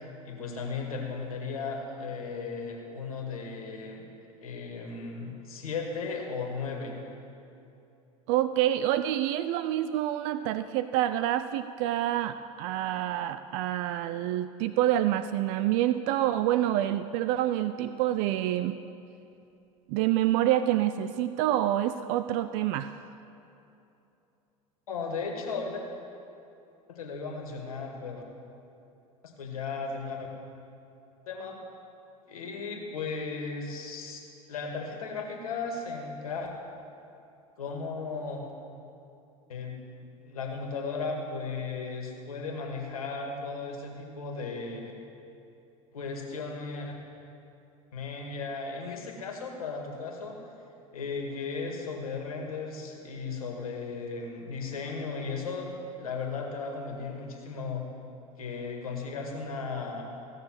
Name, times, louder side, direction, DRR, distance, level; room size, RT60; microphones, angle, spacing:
voice 1, 0.2-4.0 4.4-7.0 24.9-25.8 26.9-28.2 29.4-30.3 31.3-31.6 32.3-34.2 34.5-36.5 37.6-38.4 39.5-39.8 40.2-44.9 45.9-46.9 47.9-50.4 50.9-57.9 58.4-60.0, left 4 dB, 80° left, 1 dB, 2.0 m, -36 dB
voice 2, 8.3-18.8 19.9-23.0, right 13 dB, 55° right, 12 dB, 0.4 m, -27 dB
16.0 x 6.6 x 7.5 m, 2.8 s
hypercardioid pair, 80°, 18 cm